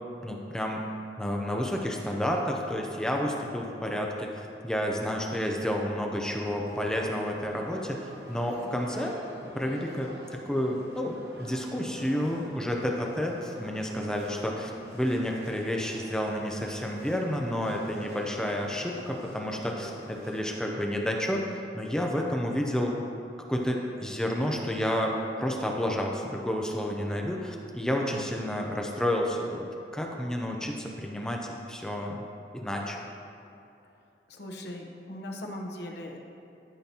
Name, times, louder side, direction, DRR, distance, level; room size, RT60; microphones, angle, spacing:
voice 1, 0.2-0.9 1.2-9.2 9.5-22.9 23.5-29.7 29.9-32.2 32.5-33.0, equal, 5° left, 0 dB, 0.5 m, -30 dB
sound 1, 6.2-20.4, equal, 65° right, 1.1 m, -46 dB
voice 2, 34.3-36.2, left 1 dB, 70° left, 1 dB, 0.9 m, -39 dB
12.0 x 5.7 x 2.9 m, 2.7 s
head